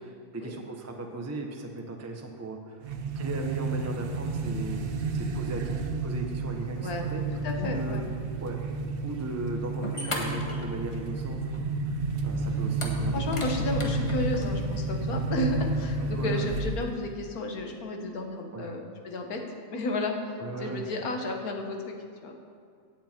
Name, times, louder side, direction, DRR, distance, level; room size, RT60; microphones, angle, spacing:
voice 1, 0.0-2.9 3.1-7.2 7.6-8.1 8.4-8.6 9.0-13.4 16.0-16.5 18.5-18.7 20.4-20.8, right 2 dB, 15° right, 2 dB, 0.8 m, -37 dB
sound 1, 2.8-17.1, right 3 dB, 50° right, 0.7 m, -31 dB
voice 2, 7.4-8.0 13.1-19.4 19.7-21.8 22.2-22.3, left 2 dB, 65° left, 3 dB, 1.8 m, -32 dB
sound 2, 9.4-9.5 9.8-11.2 11.5-11.6 12.7-14.5, left 1 dB, 20° left, 1.3 m, -36 dB
16.5 x 8.3 x 4.4 m, 2.2 s
omnidirectional pair, 1.7 m